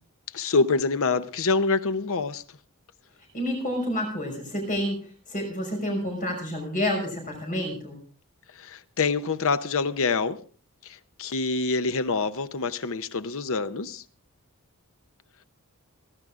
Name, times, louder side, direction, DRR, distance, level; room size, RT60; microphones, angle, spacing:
voice 1, 0.3-2.4 8.6-10.4 10.8-14.0, left 4 dB, 65° left, 0.8 m, -26 dB
voice 2, 3.3-5.0 5.3-8.0, equal, 35° left, 5.9 m, -29 dB
29.5 x 12.0 x 2.5 m
head